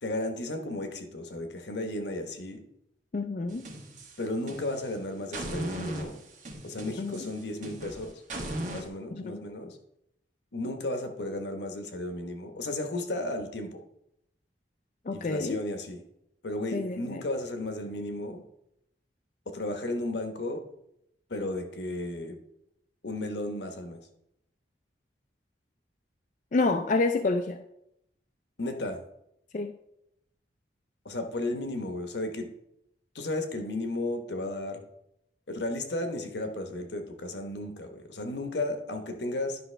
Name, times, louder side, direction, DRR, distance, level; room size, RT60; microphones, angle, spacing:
voice 1, 0.0-2.6 4.2-6.2 6.6-8.1 8.7-9.8 10.5-13.8 15.1-16.0 16.4-18.4 19.5-20.6 21.3-22.4 23.0-24.0 28.6-29.0 31.0-32.5 33.1-34.8 35.5-39.6, left 1 dB, 80° left, 6 dB, 1.1 m, -34 dB
voice 2, 3.1-3.7 7.0-7.2 9.1-9.4 15.1-15.6 16.7-17.2 26.5-27.6 29.5-29.7, left 3 dB, 45° left, 6 dB, 0.4 m, -28 dB
sound 1, 3.5-4.9 5.3-8.9, right 1 dB, 45° right, 1.4 m, -38 dB
11.0 x 5.4 x 3.3 m, 0.80 s
head